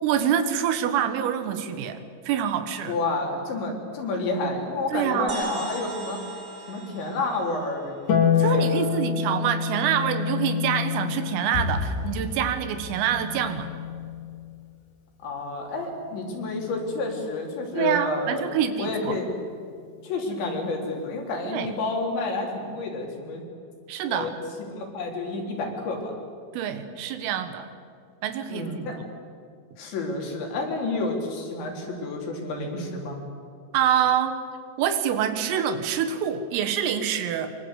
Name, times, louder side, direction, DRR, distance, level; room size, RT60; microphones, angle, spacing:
voice 1, 0.0-2.0 2.3-3.0 4.9-5.4 8.4-13.7 17.7-19.2 21.4-21.7 23.9-24.3 26.5-27.7 28.2-29.0 33.7-34.4 34.8-37.6, right 9 dB, 85° right, 9 dB, 4.2 m, -26 dB
voice 2, 2.9-6.2 6.7-8.0 8.4-9.1 15.2-18.4 18.8-19.3 20.0-23.4 24.1-24.3 24.7-26.2 28.5-29.0 29.8-33.2, left 2 dB, 60° left, 1 dB, 5.7 m, -30 dB
sound 1, 5.3-9.0, right 2 dB, 65° right, 0.7 m, -39 dB
Harp, 8.1-14.6 16.2-17.2, left 7 dB, 40° left, 3.2 m, -28 dB
sound 2, 11.5-14.6, left 4 dB, 90° left, 6.7 m, -33 dB
24.5 x 24.0 x 8.2 m, 2.2 s
omnidirectional pair, 5.8 m